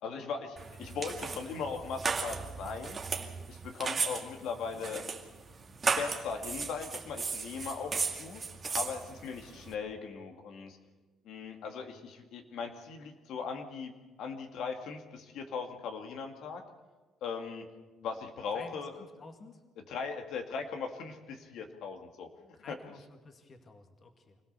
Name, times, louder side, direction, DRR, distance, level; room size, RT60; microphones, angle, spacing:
voice 1, 0.0-3.0 3.5-5.0 6.0-8.4 8.7-10.8 11.2-13.9 14.2-16.6 17.2-17.7 18.0-18.9 19.9-22.3 22.7-22.8, left 5 dB, 75° left, 4 dB, 2.3 m, -39 dB
sound 1, 0.6-9.7, right 5 dB, 30° right, 2.1 m, -36 dB
voice 2, 3.7-4.0 18.5-19.6 22.5-24.4, left 3 dB, 35° left, 5 dB, 2.1 m, -52 dB
25.5 x 17.0 x 6.8 m, 1.2 s
cardioid pair, 130°, 0 cm